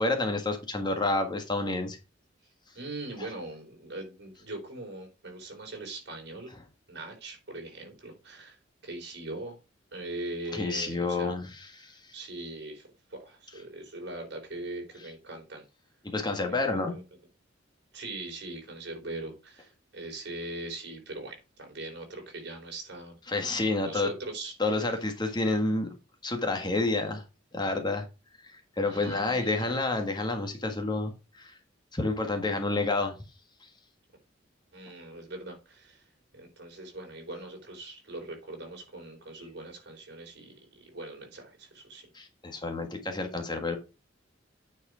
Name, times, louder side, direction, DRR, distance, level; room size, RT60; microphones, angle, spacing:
voice 1, 0.0-2.0 10.5-12.0 16.0-17.0 23.3-24.1 24.6-25.9 26.2-27.2 27.5-28.0 28.8-31.6 31.9-33.2 42.1-43.8, left 2 dB, 25° left, 1.5 m, -29 dB
voice 2, 2.7-6.5 6.9-8.6 8.8-9.6 9.9-11.3 11.8-15.6 16.5-17.0 17.9-23.1 23.7-24.5 28.9-29.8 34.7-36.0 36.3-42.1, right 2 dB, 60° right, 4.0 m, -41 dB
9.2 x 4.8 x 4.9 m
head